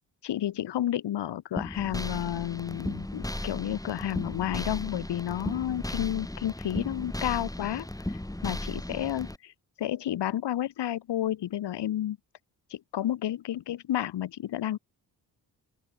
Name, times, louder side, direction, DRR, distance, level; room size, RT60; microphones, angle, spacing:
voice 1, 0.2-7.9 8.4-9.5 9.8-12.2 12.7-14.8, left 12 dB, 75° left, 6.0 m, -31 dB
sound 1, 1.6-9.4, left 1 dB, 10° left, 5.6 m, -35 dB
open air
supercardioid pair, 65°, 41 cm